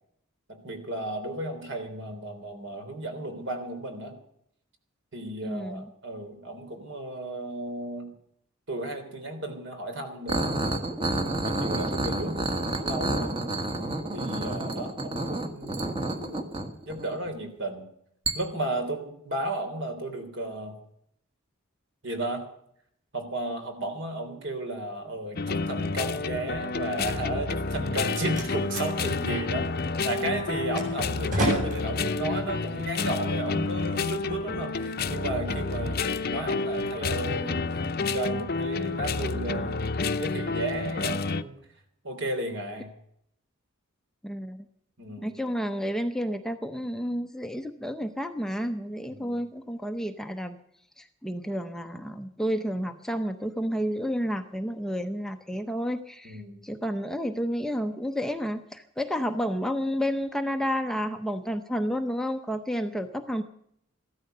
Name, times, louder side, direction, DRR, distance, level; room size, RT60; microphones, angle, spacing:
voice 1, 0.5-4.2 5.1-8.1 8.7-10.6 11.4-13.4 14.1-16.5 16.9-17.8 18.3-20.7 22.0-22.5 23.1-29.7 30.0-37.7 38.0-41.6 42.0-42.9 45.0-45.3 49.1-49.4 56.2-56.6, right 1 dB, 60° right, 6 dB, 3.4 m, -34 dB
voice 2, 5.4-5.9 44.2-44.6 45.2-50.6 51.0-63.4, equal, ahead, 6 dB, 0.7 m, -31 dB
sound 1, 10.3-17.3 18.3-18.4, right 2 dB, 25° right, 1.5 m, -29 dB
sound 2, 25.4-41.4, left 3 dB, 45° left, 0.8 m, -29 dB
Slam, 27.8-33.8, equal, 40° right, 7.6 m, -34 dB
15.0 x 13.0 x 6.7 m, 0.71 s
head